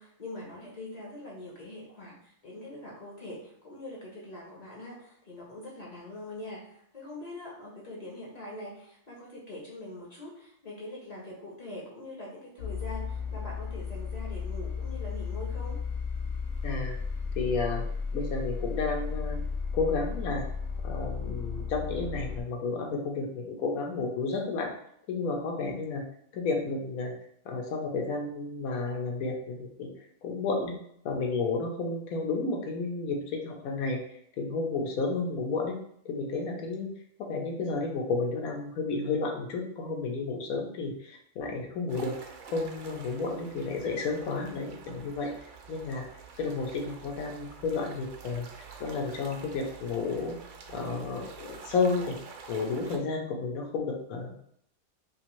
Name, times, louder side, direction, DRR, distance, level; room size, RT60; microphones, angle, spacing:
voice 1, 0.0-15.8, left 1 dB, 40° left, -4 dB, 0.6 m, -43 dB
sound 1, 12.6-22.4, left 5 dB, 70° left, 0.9 m, -34 dB
voice 2, 16.6-16.9 17.4-17.8 18.1-19.4 19.7-20.5 20.8-24.7 25.1-26.0 26.3-27.1 27.4-29.9 30.2-30.8 31.0-35.8 36.0-36.9 37.3-42.1 42.5-45.3 45.7-46.0 46.4-48.5 48.8-50.4 50.7-52.2 52.5-54.6, left 4 dB, 90° left, 2 dB, 1.1 m, -31 dB
sound 2, 41.9-53.0, right 5 dB, 70° right, 0.8 m, -47 dB
2.8 x 2.5 x 3.0 m, 0.68 s
omnidirectional pair, 1.5 m